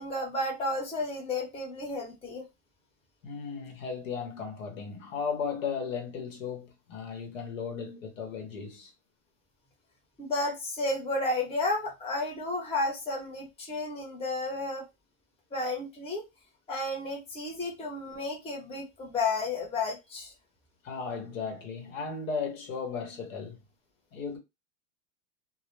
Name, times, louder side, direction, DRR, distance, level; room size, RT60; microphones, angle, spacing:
voice 1, 0.0-2.4 10.2-14.8 15.5-16.2 16.7-20.3, left 2 dB, 15° left, 0.8 m, -32 dB
voice 2, 3.2-8.9 20.8-23.6 24.1-24.4, left 5 dB, 90° left, 0.9 m, -35 dB
2.1 x 2.1 x 3.1 m
supercardioid pair, 125°, 39 cm